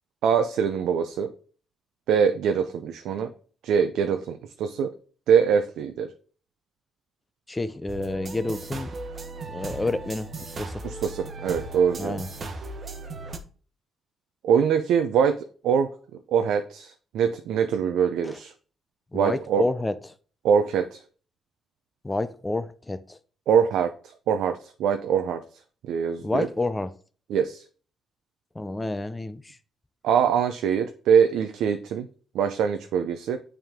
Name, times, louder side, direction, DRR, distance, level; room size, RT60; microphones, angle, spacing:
voice 1, 0.2-1.3 2.1-3.3 3.6-4.9 5.3-6.1 10.8-12.2 14.4-15.9 16.3-18.5 19.1-19.6 20.4-21.0 23.5-23.9 24.3-25.4 25.9-26.5 27.3-27.6 30.0-32.1 32.3-33.4, right 7 dB, 80° right, 0.5 m, -23 dB
voice 2, 7.5-9.0 9.5-10.8 12.0-12.3 18.2-18.4 19.1-20.2 22.0-23.2 26.2-27.0 28.5-29.6, left 2 dB, 15° left, 0.5 m, -29 dB
sound 1, 7.9-13.4, right 3 dB, 40° right, 1.0 m, -37 dB
8.9 x 3.5 x 3.6 m
cardioid pair, 90°, 0 cm